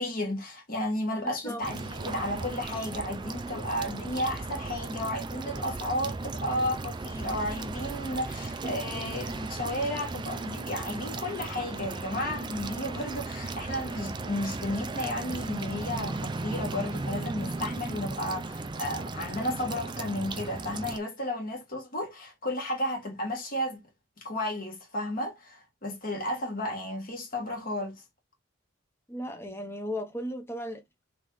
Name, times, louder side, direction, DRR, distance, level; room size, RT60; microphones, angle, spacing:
voice 1, 0.0-23.8 24.2-28.0, left 1 dB, 45° left, 1.5 m, -33 dB
voice 2, 1.2-1.6 29.1-30.8, equal, 10° left, 0.7 m, -36 dB
sound 1, 1.6-21.0, right 3 dB, 20° right, 0.3 m, -36 dB
3.8 x 3.7 x 3.0 m
head